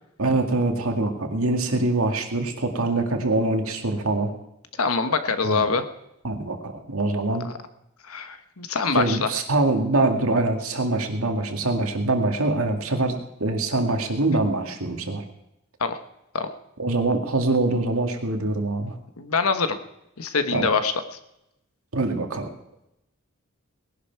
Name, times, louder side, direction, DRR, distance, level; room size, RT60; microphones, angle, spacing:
voice 1, 0.2-4.3 5.4-5.6 6.2-7.4 8.9-15.2 16.8-19.0 20.5-20.7 21.9-22.5, right 2 dB, 80° right, 4 dB, 2.1 m, -24 dB
voice 2, 4.8-5.9 7.4-7.6 8.0-9.4 15.8-16.0 16.3-16.5 19.2-19.8 20.2-21.2, left 4 dB, 80° left, 9 dB, 1.2 m, -24 dB
19.0 x 11.5 x 4.6 m, 0.86 s
head